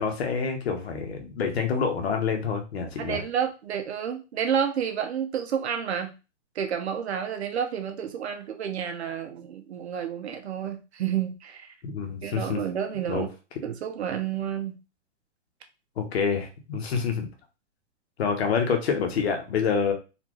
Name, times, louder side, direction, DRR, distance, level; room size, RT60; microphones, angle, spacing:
voice 1, 0.0-3.2 11.8-12.6 13.1-13.2 16.0-17.3 18.2-19.9, left 6 dB, 55° left, 4 dB, 1.1 m, -27 dB
voice 2, 3.0-6.1 6.5-11.7 12.2-13.3 13.6-14.8, right 8 dB, 60° right, 5 dB, 0.9 m, -30 dB
4.2 x 2.6 x 3.0 m, 0.30 s
hypercardioid pair, 165°, 37 cm